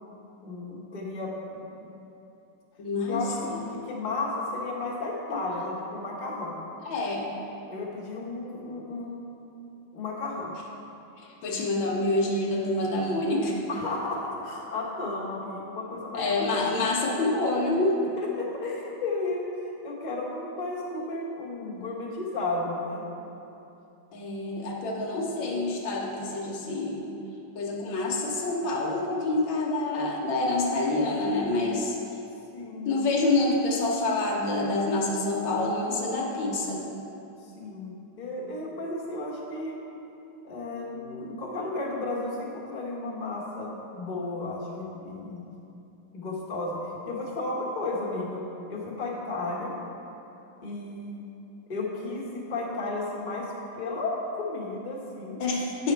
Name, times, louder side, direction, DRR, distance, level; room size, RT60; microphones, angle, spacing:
voice 1, 0.4-1.6 3.1-6.6 7.7-9.2 9.9-10.5 13.7-16.4 18.2-23.0 32.5-33.1 37.5-39.8 40.4-45.5 46.1-46.8 47.0-49.8 50.6-51.2 51.7-53.5 53.7-55.4, left 2 dB, 25° left, -5 dB, 1.1 m, -33 dB
voice 2, 2.8-3.2 3.5-3.6 5.3-5.4 5.6-5.7 6.9-7.3 11.4-13.6 16.1-18.0 24.1-27.1 27.6-32.0 32.9-36.8 55.4-55.9, left 2 dB, 70° left, -2 dB, 1.7 m, -27 dB
9.2 x 5.7 x 4.5 m, 2.9 s
omnidirectional pair, 2.3 m